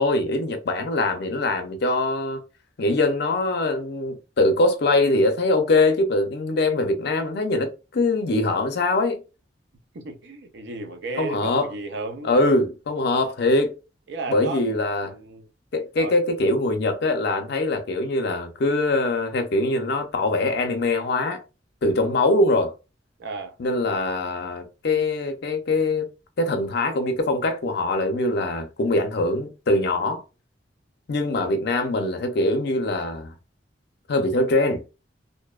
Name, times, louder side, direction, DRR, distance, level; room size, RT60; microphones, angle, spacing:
voice 1, 0.0-2.4 2.8-9.2 11.2-11.7 12.2-13.8 14.3-15.1 15.7-21.4 21.8-22.7 23.6-26.1 26.4-30.2 31.1-33.3 34.1-34.8, left 2 dB, 60° left, 0.5 m, -23 dB
voice 2, 9.9-12.3 14.1-14.6 15.0-15.5 16.0-16.2 21.9-22.2 23.2-23.5 30.0-30.2, right 3 dB, 65° right, 0.5 m, -34 dB
2.6 x 2.1 x 2.3 m
head